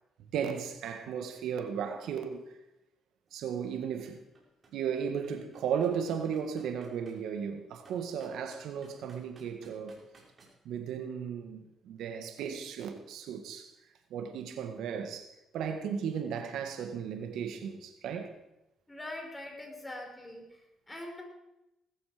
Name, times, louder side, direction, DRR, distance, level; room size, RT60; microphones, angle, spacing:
voice 1, 0.3-2.4 3.3-4.2 4.7-10.0 10.6-13.7 14.1-18.3, right 7 dB, 80° right, 1.8 m, -35 dB
sound 1, 3.3-3.4 3.8-7.2 7.8-10.5, right 3 dB, 40° right, 5.6 m, -59 dB
voice 2, 18.9-21.2, left 1 dB, 15° left, 5.5 m, -43 dB
18.5 x 14.0 x 5.2 m
cardioid pair, 90°, 0 cm